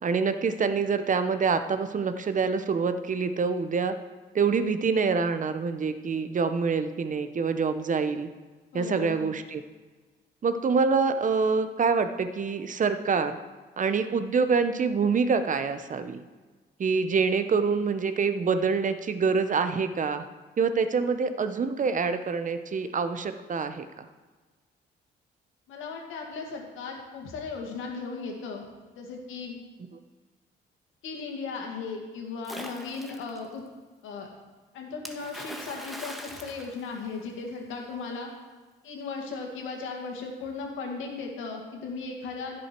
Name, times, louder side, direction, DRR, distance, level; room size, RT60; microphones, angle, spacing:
voice 1, 0.0-4.0 4.3-8.3 8.7-9.6 10.4-13.4 13.8-16.2 16.8-20.2 20.6-24.0, right 5 dB, 40° right, 10 dB, 0.8 m, -26 dB
voice 2, 8.7-9.2 25.7-28.7 28.9-29.6 31.0-33.6 34.0-34.3 34.7-38.3 38.8-42.6, left 4 dB, 90° left, 1 dB, 2.1 m, -36 dB
Splash splatter, 32.4-33.4 35.1-37.5, equal, ahead, 1.3 m, -41 dB
15.5 x 6.3 x 4.5 m, 1.3 s
cardioid pair, 90°, 20 cm